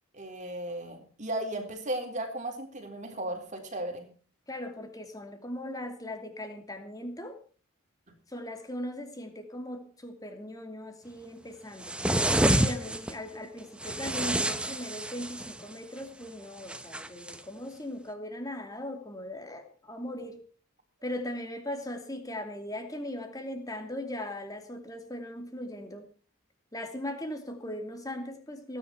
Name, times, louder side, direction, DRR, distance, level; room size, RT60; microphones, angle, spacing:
voice 1, 0.1-4.1, right 1 dB, 35° right, 3 dB, 3.8 m, -35 dB
voice 2, 4.5-7.4 8.3-12.0 12.3-20.4 21.0-26.1 26.7-28.8, left 1 dB, 15° left, 5 dB, 2.7 m, -39 dB
sound 1, 11.8-13.1 13.8-15.6 16.7-17.4, right 1 dB, 5° right, 1.0 m, -28 dB
17.5 x 10.0 x 5.9 m, 0.42 s
head